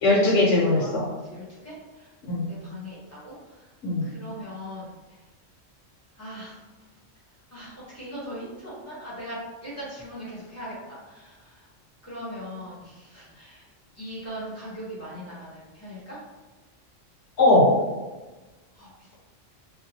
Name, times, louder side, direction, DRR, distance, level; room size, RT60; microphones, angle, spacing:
voice 1, 0.0-1.0 2.3-2.4 3.8-4.0 17.4-17.7, left 2 dB, 65° left, -6 dB, 1.3 m, -19 dB
voice 2, 1.0-2.1 2.5-3.3 4.0-4.9 6.2-6.6 7.5-11.5 12.0-13.6 14.0-16.2 18.7-19.1, equal, 15° left, -9 dB, 1.0 m, -40 dB
2.7 x 2.3 x 2.9 m, 1.2 s
omnidirectional pair, 1.3 m